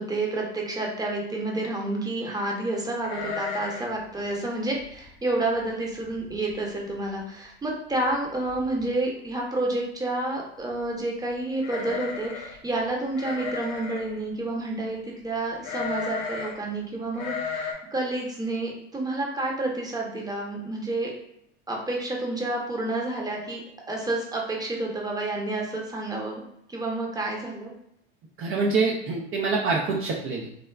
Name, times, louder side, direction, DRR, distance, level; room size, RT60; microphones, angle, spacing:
voice 1, 0.0-21.1 21.7-23.6 23.9-26.4 26.7-27.7, right 2 dB, 10° right, -1 dB, 0.8 m, -29 dB
sound 1, 3.0-4.0 4.2-4.3 4.8-5.1 5.6-5.7 6.0-6.5 6.9-7.0 8.1-8.2 8.5-8.9 11.6-12.6 13.2-14.1 15.6-16.6 17.1-17.7, left 5 dB, 65° left, 0.8 m, -34 dB
voice 2, 28.4-30.5, right 4 dB, 45° right, -1 dB, 0.6 m, -25 dB
3.6 x 2.1 x 2.3 m, 0.75 s
hypercardioid pair, 75°, 31 cm